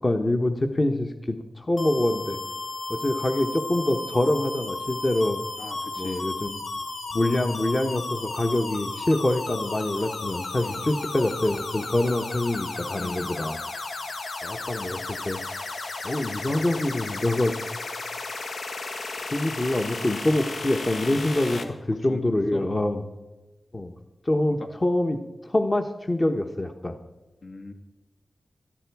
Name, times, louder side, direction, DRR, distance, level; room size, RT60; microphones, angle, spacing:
voice 1, 0.0-2.4 2.9-5.4 6.0-6.6 7.1-13.6 14.4-15.4 16.0-17.5 19.3-23.0 23.7-23.9 24.2-27.0, left 1 dB, 30° left, 5 dB, 1.0 m, -25 dB
sound 1, 1.8-21.6, left 3 dB, 85° left, 1.6 m, -34 dB
voice 2, 5.6-6.3 10.6-10.9 13.0-13.3 21.5-21.8 22.1-22.7 24.3-24.7 27.4-27.7, left 2 dB, 70° left, 4 dB, 2.0 m, -40 dB
17.5 x 13.5 x 4.7 m, 1.1 s
wide cardioid pair, 80°, 0 cm